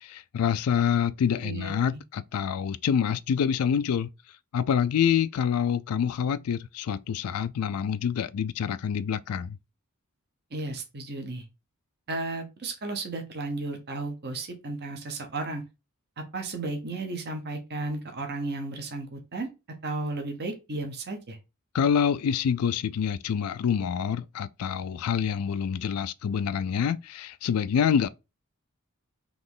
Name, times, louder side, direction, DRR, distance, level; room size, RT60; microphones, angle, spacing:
voice 1, 0.0-4.1 4.5-9.6 21.7-28.1, left 7 dB, 80° left, 0.3 m, -26 dB
voice 2, 1.4-1.8 10.5-11.4 12.1-15.6 16.2-19.5 19.8-21.4, right 2 dB, 50° right, 0.9 m, -34 dB
3.8 x 3.0 x 3.8 m
head